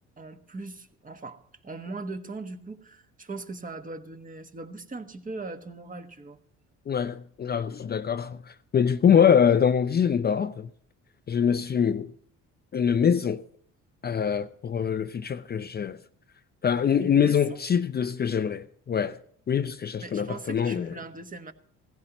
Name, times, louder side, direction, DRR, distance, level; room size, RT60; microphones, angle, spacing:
voice 1, 0.2-6.4 17.0-17.6 20.0-21.5, right 3 dB, 25° right, 1.3 m, -39 dB
voice 2, 6.9-10.7 11.3-12.1 12.7-13.4 14.0-16.0 16.6-19.2 19.5-20.9, left 7 dB, 30° left, 0.5 m, -24 dB
16.5 x 15.0 x 3.0 m
cardioid pair, 85°, 31 cm